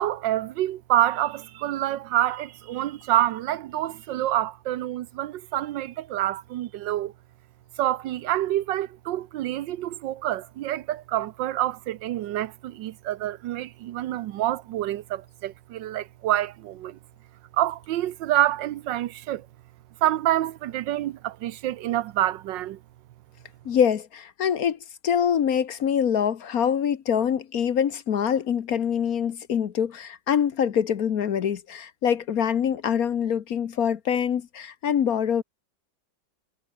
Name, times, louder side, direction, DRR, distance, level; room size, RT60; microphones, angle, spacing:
voice 1, 0.0-7.1 7.8-17.0 17.5-19.5 20.0-22.8, right 13 dB, 80° right, 1.4 m, -27 dB
voice 2, 23.6-35.4, left 8 dB, 55° left, 1.4 m, -24 dB
omnidirectional pair, 2.0 m